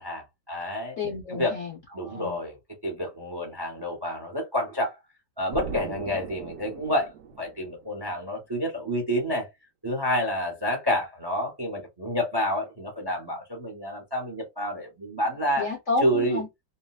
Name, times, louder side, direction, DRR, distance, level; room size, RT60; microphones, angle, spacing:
voice 1, 0.0-1.0 1.3-1.5 1.9-2.5 2.8-4.9 5.4-7.1 7.4-9.5 9.8-15.7 16.0-16.4, equal, 30° right, 0.4 m, -29 dB
voice 2, 1.0-2.4 5.7-5.8 15.6-16.5, left 3 dB, 55° left, 0.9 m, -31 dB
Explosion, 5.5-8.2, right 7 dB, 70° right, 1.0 m, -39 dB
3.8 x 2.1 x 2.3 m
omnidirectional pair, 2.1 m